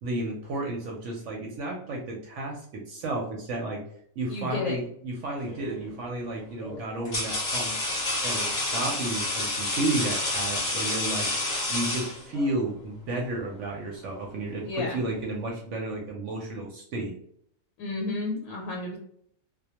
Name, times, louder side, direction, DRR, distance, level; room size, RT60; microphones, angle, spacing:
voice 1, 0.0-3.8 4.2-7.7 8.2-11.3 11.7-17.1, right 2 dB, 65° right, 0 dB, 0.8 m, -32 dB
voice 2, 4.3-4.8 14.7-15.0 17.8-19.0, left 3 dB, 75° left, -2 dB, 1.0 m, -31 dB
sound 1, 5.5-5.8 6.6-12.6, left 2 dB, 45° left, 0.6 m, -29 dB
2.2 x 2.1 x 2.8 m, 0.67 s
omnidirectional pair, 1.5 m